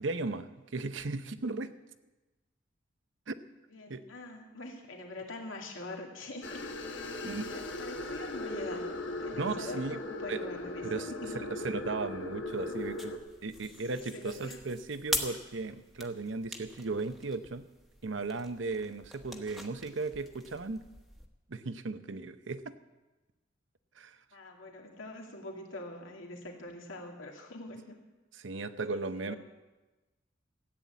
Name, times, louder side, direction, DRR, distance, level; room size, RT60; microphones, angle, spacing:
voice 1, 0.0-1.7 3.3-3.4 3.9-4.0 7.2-7.5 9.3-10.0 10.3-10.4 10.8-13.1 13.4-17.6 18.0-20.8 21.5-22.7 24.0-24.2 28.4-29.3, right 3 dB, 70° right, 12 dB, 0.8 m, -36 dB
voice 2, 3.7-6.7 7.1-8.9 9.2-11.6 14.1-14.6 24.3-28.0 28.9-29.4, left 2 dB, 90° left, 1 dB, 2.5 m, -44 dB
sound 1, 6.4-13.2, left 2 dB, 65° left, 1.4 m, -38 dB
sound 2, 12.4-21.3, equal, ahead, 1.1 m, -43 dB
14.5 x 9.0 x 8.3 m, 1.1 s
head